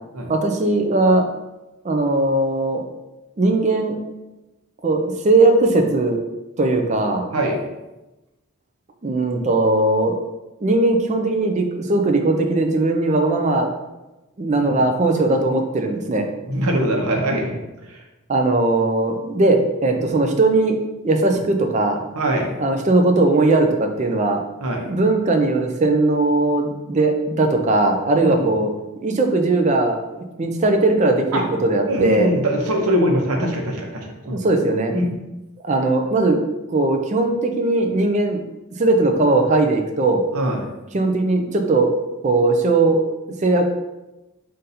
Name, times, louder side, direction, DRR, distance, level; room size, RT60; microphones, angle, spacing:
voice 1, 0.3-1.3 1.8-2.8 3.4-4.0 4.8-6.2 6.6-7.2 9.0-10.2 10.6-13.7 14.4-16.3 18.3-20.8 21.0-22.0 22.6-24.4 24.9-32.3 34.3-34.9 35.6-36.4 36.7-38.4 38.8-40.2 40.9-41.9 42.2-43.0 43.4-43.7, right 2 dB, 35° right, 4 dB, 0.4 m, -19 dB
voice 2, 7.3-7.6 14.5-14.8 16.4-17.5 17.9-18.0 20.0-20.1 22.1-22.5 24.6-24.9 28.1-28.5 31.3-31.4 31.9-34.4 34.9-35.1 40.3-40.7, equal, 90° right, 1 dB, 0.8 m, -22 dB
3.9 x 2.6 x 4.1 m, 1.0 s
head